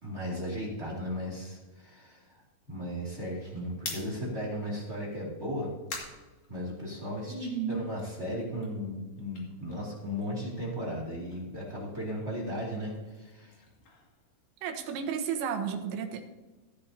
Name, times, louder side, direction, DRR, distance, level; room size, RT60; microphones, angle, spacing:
voice 1, 0.0-2.4 2.7-5.7 6.5-13.5, equal, 25° right, -4 dB, 1.3 m, -36 dB
sound 1, 3.8-7.2 7.6-10.5 10.8-14.9, left 3 dB, 45° left, 2.7 m, -47 dB
voice 2, 7.3-7.8 14.6-16.2, right 7 dB, 80° right, 6 dB, 3.4 m, -32 dB
16.5 x 10.5 x 2.8 m, 1.2 s
omnidirectional pair, 5.4 m